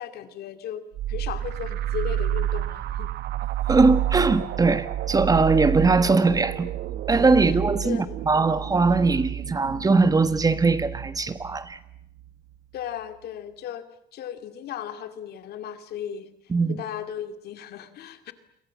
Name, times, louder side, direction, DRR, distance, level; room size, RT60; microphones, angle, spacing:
voice 1, 0.0-3.1 7.5-8.2 12.7-13.9 14.1-16.3 16.7-18.3, left 9 dB, 70° left, 2.4 m, -36 dB
sound 1, 0.9-12.3, right 12 dB, 75° right, 1.3 m, -30 dB
voice 2, 3.7-6.7 7.1-8.0 8.3-11.8 16.5-16.8, right 3 dB, 20° right, 1.7 m, -21 dB
29.0 x 23.0 x 7.6 m
cardioid pair, 110°, 17 cm